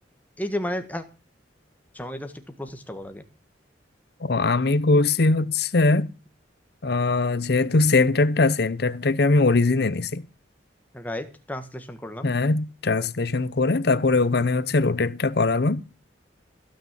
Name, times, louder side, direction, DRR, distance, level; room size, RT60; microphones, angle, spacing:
voice 1, 0.4-1.0 1.9-2.3 2.6-3.2 10.9-12.3, left 1 dB, 10° left, 1.4 m, -32 dB
voice 2, 4.2-6.1 6.8-10.2 12.2-15.8, left 3 dB, 60° left, 0.7 m, -21 dB
16.0 x 6.4 x 7.3 m
head